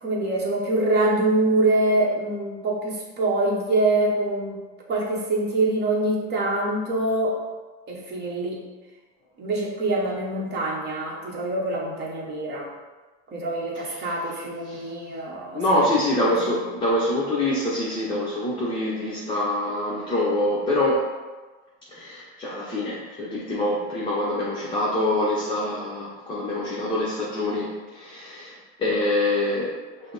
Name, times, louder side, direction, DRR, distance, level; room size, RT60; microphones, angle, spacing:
voice 1, 0.0-4.6 4.9-7.4 7.9-8.6 9.4-12.7 13.3-15.6 16.4-16.5, right 2 dB, 30° right, -2 dB, 1.0 m, -24 dB
voice 2, 13.7-14.1 14.6-14.9 15.5-21.1 21.9-30.1, left 1 dB, 15° left, -7 dB, 0.7 m, -25 dB
5.5 x 2.0 x 3.9 m, 1.3 s
supercardioid pair, 130°, 33 cm